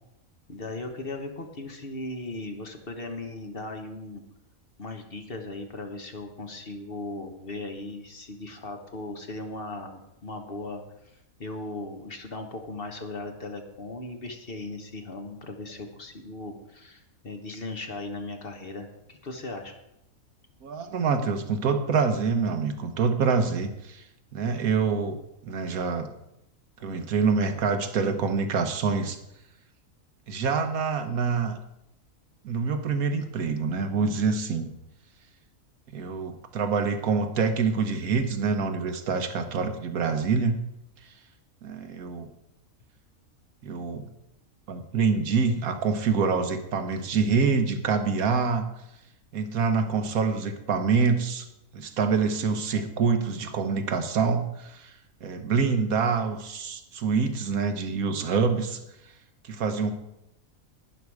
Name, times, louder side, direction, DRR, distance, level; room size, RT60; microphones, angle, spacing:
voice 1, 0.5-4.2 4.8-19.7, left 2 dB, 45° left, 4 dB, 1.3 m, -38 dB
voice 2, 20.6-24.0 24.3-25.2 25.4-26.1 26.8-29.2 30.3-31.5 32.4-34.7 35.9-40.5 41.6-42.3 43.6-44.1 44.7-48.7 49.3-51.4 51.7-54.9 55.2-58.8 59.4-59.9, right 5 dB, 80° right, 7 dB, 1.5 m, -26 dB
11.5 x 10.0 x 4.7 m, 0.85 s
omnidirectional pair, 1.5 m